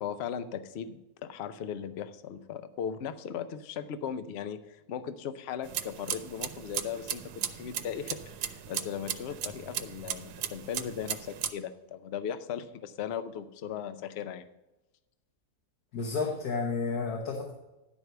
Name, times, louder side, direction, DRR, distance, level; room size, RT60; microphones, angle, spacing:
voice 1, 0.0-14.5, left 8 dB, 60° left, 12 dB, 0.7 m, -38 dB
sound 1, 5.6-11.5, right 9 dB, 90° right, 1.2 m, -37 dB
voice 2, 15.9-17.5, left 4 dB, 75° left, 0 dB, 1.7 m, -31 dB
11.0 x 4.6 x 6.7 m, 0.99 s
omnidirectional pair, 1.7 m